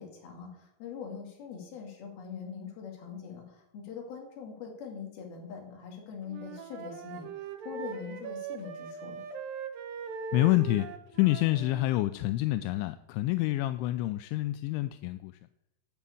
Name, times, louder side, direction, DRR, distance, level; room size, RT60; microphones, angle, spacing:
voice 1, 0.0-9.2, left 6 dB, 55° left, 1 dB, 3.9 m, -43 dB
Wind instrument woodwind instrument, 6.3-11.9, right 6 dB, 75° right, 2.1 m, -40 dB
voice 2, 10.3-10.9 11.2-15.3, left 17 dB, 85° left, 11 dB, 2.7 m, -27 dB
10.5 x 7.5 x 8.4 m, 0.83 s
omnidirectional pair, 5.6 m